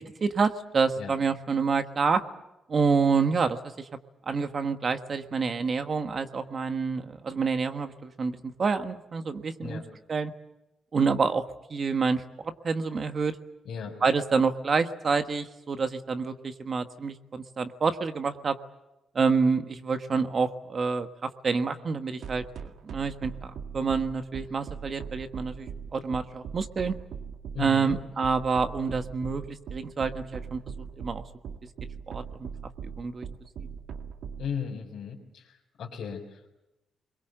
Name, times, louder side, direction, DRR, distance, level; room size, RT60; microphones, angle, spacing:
voice 1, 0.0-2.2 2.7-3.9 4.3-9.8 10.1-10.3 10.9-11.4 11.7-13.3 14.0-18.6 19.1-21.1 21.4-22.4 22.8-27.0 27.6-30.6 31.0-31.2 32.1-32.5 32.8-33.3 33.6-33.7, right 5 dB, 35° right, 8 dB, 1.4 m, -28 dB
voice 2, 13.6-14.0 27.5-28.0 34.4-36.5, left 7 dB, 60° left, -3 dB, 4.1 m, -36 dB
sound 1, 22.2-34.5, right 6 dB, 70° right, 1.9 m, -39 dB
29.5 x 22.5 x 7.8 m, 0.94 s
wide cardioid pair, 170°, 0 cm